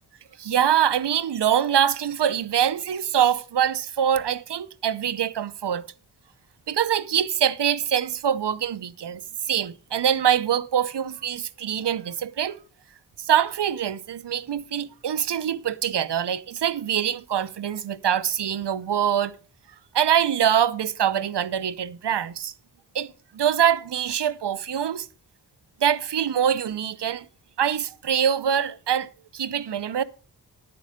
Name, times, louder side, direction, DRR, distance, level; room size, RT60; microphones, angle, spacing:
voice 1, 0.4-5.8 6.7-9.2 9.5-12.6 13.2-19.3 19.9-22.5 22.9-25.1 25.8-27.2 27.6-30.0, right 9 dB, 80° right, 0.7 m, -24 dB
10.0 x 9.5 x 5.0 m
wide cardioid pair, 75°, 40 cm